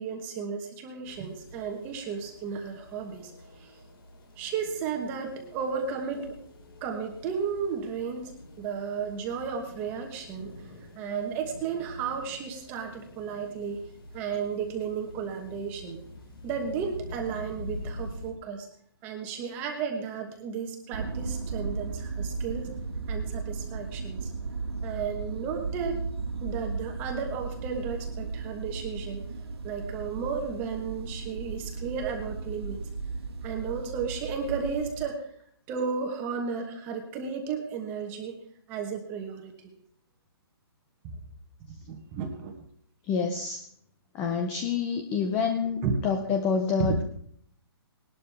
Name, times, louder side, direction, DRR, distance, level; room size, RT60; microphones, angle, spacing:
voice 1, 0.0-3.3 3.6-3.8 4.4-6.4 6.8-8.3 8.6-13.8 14.1-16.0 16.4-18.7 19.0-22.7 23.1-24.3 24.8-26.1 26.4-29.2 29.6-32.8 33.4-35.3 35.7-38.3 38.7-39.7 41.0-41.1 41.9-42.5 45.8-46.0 46.8-46.9, right 6 dB, 15° right, 3 dB, 1.2 m, -33 dB
sound 1, 1.0-18.3, left 1 dB, 65° left, 4.8 m, -46 dB
sound 2, 20.9-35.0, right 4 dB, 80° right, 1.7 m, -35 dB
voice 2, 43.1-43.6 44.1-47.0, left 5 dB, 10° left, 6 dB, 0.5 m, -27 dB
19.0 x 12.0 x 3.5 m, 0.63 s
hypercardioid pair, 175°, 13 cm